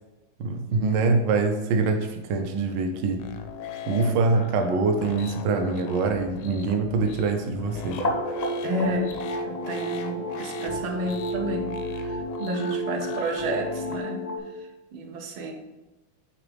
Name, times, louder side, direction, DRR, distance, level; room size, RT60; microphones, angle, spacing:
voice 1, 0.4-3.3 3.9-8.0, right 3 dB, 70° right, 5 dB, 1.3 m, -24 dB
sound 1, 3.2-14.0, left 7 dB, 75° left, 1.1 m, -40 dB
sound 2, 7.8-14.4, equal, 35° left, 0.6 m, -31 dB
voice 2, 8.6-9.1 9.4-14.3 14.6-15.5, right 1 dB, 85° right, 3 dB, 1.7 m, -31 dB
8.5 x 4.1 x 3.4 m, 1.1 s
omnidirectional pair, 2.2 m